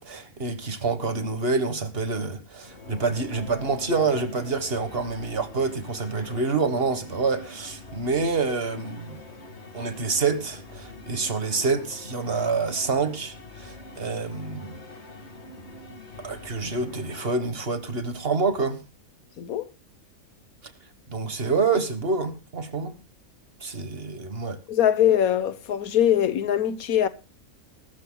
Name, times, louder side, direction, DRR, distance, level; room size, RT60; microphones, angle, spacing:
voice 1, 0.0-9.2 9.7-14.8 16.2-18.8 21.1-22.9 23.6-24.6, right 4 dB, 45° right, 1.6 m, -27 dB
sound 1, 2.6-17.3, left 2 dB, 50° left, 2.1 m, -44 dB
voice 2, 19.4-19.7 24.7-27.1, left 10 dB, 90° left, 1.4 m, -22 dB
21.0 x 13.0 x 2.2 m
omnidirectional pair, 1.5 m